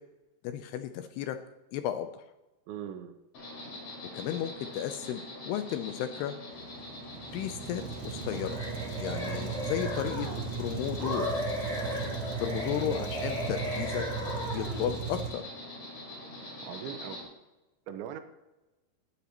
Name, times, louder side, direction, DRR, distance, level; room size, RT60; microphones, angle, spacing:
voice 1, 0.4-1.4 1.7-2.2 4.1-6.4 7.3-8.6 8.9-10.3 10.6-11.3 12.4-14.0 14.5-15.4, left 11 dB, 80° left, 8 dB, 2.4 m, -34 dB
voice 2, 2.7-3.1 12.8-13.1 16.6-17.2 17.9-18.2, right 9 dB, 85° right, 8 dB, 3.1 m, -40 dB
Insect, 3.3-17.2, left 1 dB, 45° left, 6.0 m, -44 dB
Truck, 6.5-15.3, right 5 dB, 65° right, 3.4 m, -37 dB
sound 1, 8.3-10.5 11.0-14.9, equal, 10° right, 4.5 m, -36 dB
18.5 x 9.9 x 3.0 m, 1.0 s
omnidirectional pair, 5.1 m